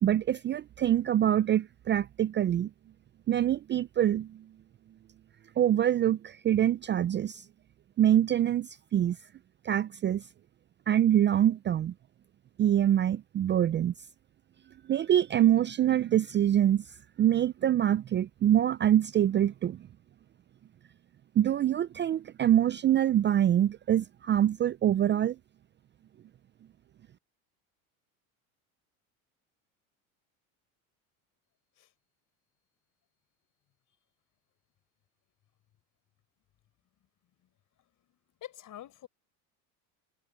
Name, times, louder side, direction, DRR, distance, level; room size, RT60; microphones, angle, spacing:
voice 1, 0.0-2.7 3.3-4.4 5.6-7.5 8.0-9.2 9.6-10.3 10.9-11.9 12.6-13.9 14.9-16.9 17.2-19.9 21.4-25.4, right 11 dB, 25° right, 0.5 m, -25 dB
voice 2, 38.4-39.1, left 12 dB, 45° left, 5.0 m, -45 dB
supercardioid pair, 95°, 41 cm